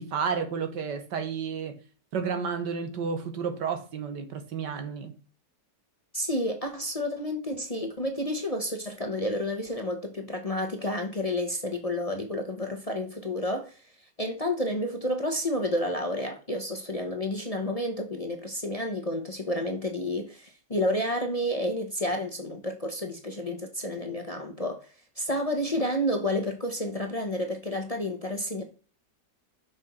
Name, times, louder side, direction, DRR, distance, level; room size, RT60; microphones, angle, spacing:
voice 1, 0.0-1.8 2.1-5.2, right 6 dB, 80° right, 1.9 m, -31 dB
voice 2, 6.1-13.8 14.2-24.9 25.2-28.6, left 1 dB, 25° left, 1.0 m, -30 dB
6.3 x 6.1 x 4.4 m
omnidirectional pair, 1.9 m